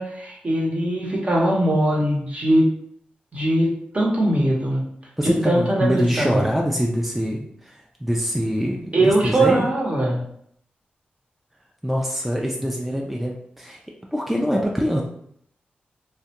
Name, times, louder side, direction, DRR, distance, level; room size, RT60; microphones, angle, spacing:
voice 1, 0.0-2.7 3.3-4.8 5.2-6.4 8.9-10.2, right 1 dB, 40° right, -3 dB, 0.8 m, -21 dB
voice 2, 5.2-9.7 11.8-13.8 14.1-15.0, equal, 5° right, -1 dB, 0.3 m, -24 dB
2.3 x 2.1 x 2.8 m, 0.68 s
cardioid pair, 60°, 3 cm